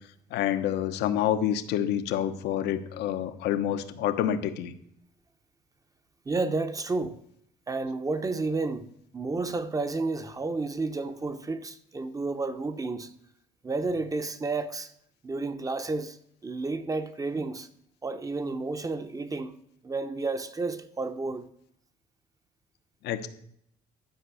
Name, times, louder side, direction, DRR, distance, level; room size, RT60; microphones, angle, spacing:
voice 1, 0.3-4.7 23.0-23.3, left 10 dB, 80° left, 1.0 m, -28 dB
voice 2, 6.3-7.2 7.7-13.1 13.6-14.9 15.2-16.2 16.4-17.7 18.0-19.6 19.8-21.5, right 3 dB, 20° right, 0.9 m, -31 dB
11.5 x 5.2 x 8.2 m
cardioid pair, 110°, 17 cm